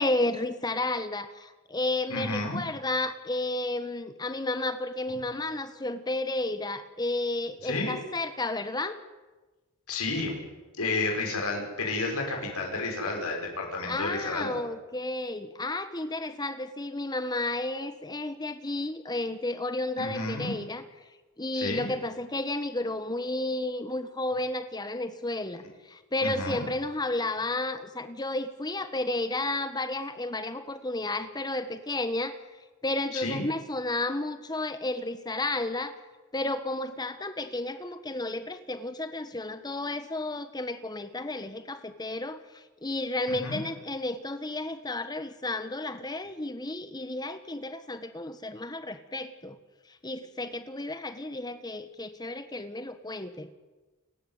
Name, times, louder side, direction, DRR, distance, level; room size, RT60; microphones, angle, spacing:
voice 1, 0.0-9.0 13.9-20.8 21.4-32.4 32.8-36.0 36.3-49.6 49.9-53.5, left 2 dB, 20° left, 10 dB, 1.2 m, -32 dB
voice 2, 2.1-2.6 7.6-8.0 9.9-10.3 10.8-14.6 20.0-20.5 21.5-21.9 26.2-26.6 33.1-33.4 43.3-43.6, left 3 dB, 75° left, 0 dB, 6.6 m, -31 dB
29.5 x 13.5 x 9.5 m, 1.2 s
head